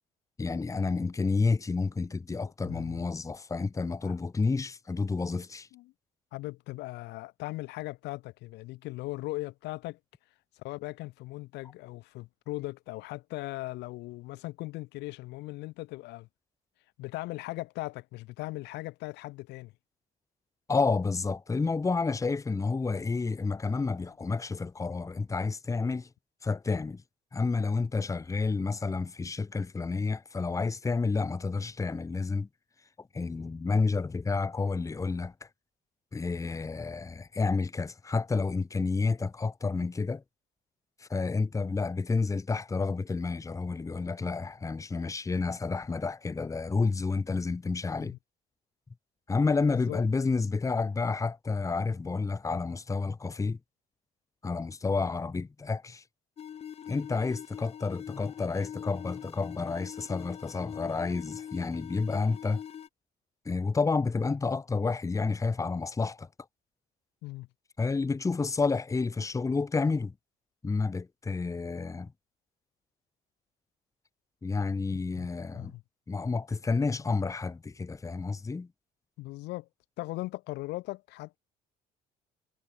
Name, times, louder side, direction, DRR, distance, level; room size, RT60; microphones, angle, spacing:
voice 1, 0.4-5.7 20.7-26.1 26.4-27.0 27.3-32.5 33.0-35.5 36.1-40.2 41.0-48.1 49.3-53.6 54.4-56.0 56.9-62.6 63.4-66.3 67.8-70.1 70.6-72.1 74.4-75.7 76.1-78.7, left 4 dB, 20° left, 1.1 m, -30 dB
voice 2, 2.6-3.1 4.0-4.1 5.7-5.9 6.3-10.0 10.6-16.3 17.0-19.7 48.0-48.2 49.7-50.0 67.2-67.5 75.2-75.3 75.5-75.8 79.2-79.7 80.0-81.4, left 20 dB, 85° left, 1.4 m, -39 dB
sound 1, 56.4-62.9, left 9 dB, 40° left, 0.5 m, -43 dB
cardioid pair, 110°, 17 cm